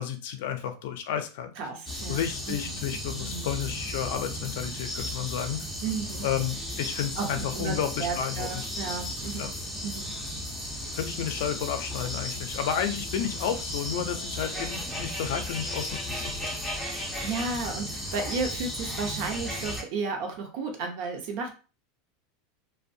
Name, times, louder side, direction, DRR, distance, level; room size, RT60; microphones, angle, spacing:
voice 1, 0.0-1.5 2.1-5.7 6.2-8.6 9.4-9.5 11.0-16.5 17.2-17.3, left 9 dB, 65° left, 8 dB, 0.4 m, -31 dB
voice 2, 1.6-2.8 3.2-3.5 5.8-6.3 7.2-9.5 9.8-10.2 16.9-21.5, right 4 dB, 55° right, 3 dB, 0.7 m, -33 dB
sound 1, 1.9-19.8, left 1 dB, ahead, 0.5 m, -35 dB
2.6 x 2.1 x 2.6 m, 0.35 s
supercardioid pair, 160°, 0 cm